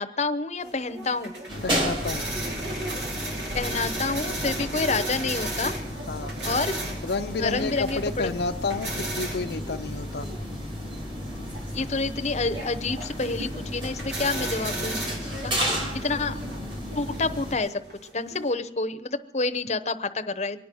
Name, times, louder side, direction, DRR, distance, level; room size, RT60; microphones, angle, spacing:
voice 1, 0.0-1.3 3.5-5.8 6.4-6.8 7.4-8.3 11.7-15.5 15.9-16.4 16.9-17.8 18.1-20.6, left 3 dB, 40° left, 9 dB, 0.8 m, -28 dB
sound 1, 0.6-18.5, right 2 dB, 85° right, 5.5 m, -36 dB
sound 2, 1.5-17.5, equal, 30° right, 3.3 m, -33 dB
voice 2, 1.6-2.3 6.1-6.3 7.0-10.3, left 3 dB, 65° left, 6 dB, 0.6 m, -30 dB
24.0 x 9.3 x 6.2 m, 0.78 s
head